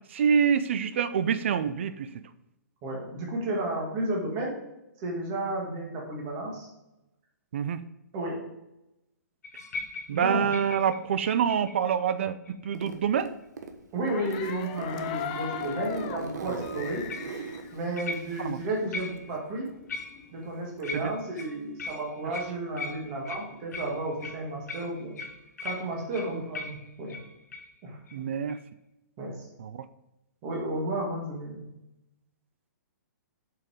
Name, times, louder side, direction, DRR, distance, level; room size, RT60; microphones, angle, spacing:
voice 1, 0.1-2.1 7.5-7.8 10.1-12.4 12.6-13.3 16.4-16.6 18.4-18.6 20.9-21.1 22.2-22.3 28.1-28.6 29.6-29.8, right 7 dB, 40° right, 13 dB, 0.4 m, -26 dB
voice 2, 2.8-4.6 5.0-6.7 8.1-8.5 10.1-10.5 13.9-17.1 17.7-19.7 20.3-25.1 25.6-27.2 27.8-28.0 29.2-29.5 30.4-31.6, right 2 dB, 20° right, -2 dB, 2.1 m, -32 dB
sound 1, 9.4-11.9 12.5-12.9 17.1-17.4 18.0-18.6 18.9-19.4 19.9-20.5 20.8-27.7 28.1-28.2 28.5-28.6, left 3 dB, 65° left, 1.2 m, -40 dB
Zipper (clothing), 12.7-13.8 14.1-18.8, right 4 dB, 70° right, 1.3 m, -39 dB
sound 2, 14.1-18.7 19.0-19.1 19.3-21.1, left 9 dB, 25° left, 0.5 m, -39 dB
7.5 x 5.8 x 4.9 m, 0.91 s
hypercardioid pair, 170°, 10 cm